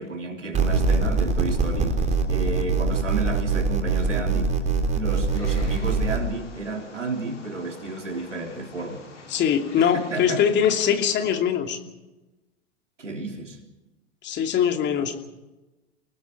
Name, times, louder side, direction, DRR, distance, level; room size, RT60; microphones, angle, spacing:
voice 1, 0.0-2.0 2.3-4.6 4.9-9.0 9.9-10.4 13.0-13.6, right 2 dB, 85° right, 3.8 m, -31 dB
sound 1, 0.5-6.2, right 4 dB, 20° right, 3.4 m, -23 dB
Wild animals, 5.3-11.4, left 4 dB, 75° left, 6.6 m, -46 dB
voice 2, 9.3-11.8 14.2-15.3, left 8 dB, 30° left, 2.9 m, -22 dB
30.0 x 19.0 x 4.7 m
figure-of-eight pair, 95°, 36 cm